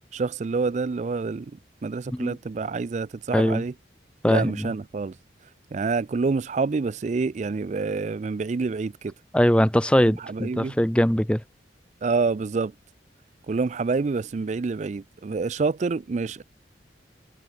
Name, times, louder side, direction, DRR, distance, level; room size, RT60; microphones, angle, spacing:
voice 1, 0.1-3.7 4.2-5.2 5.7-9.1 10.0-10.8 12.0-12.7 13.5-16.4, right 4 dB, 40° right, 0.4 m, -27 dB
voice 2, 4.2-4.7 9.3-11.4, equal, 5° left, 0.9 m, -21 dB
head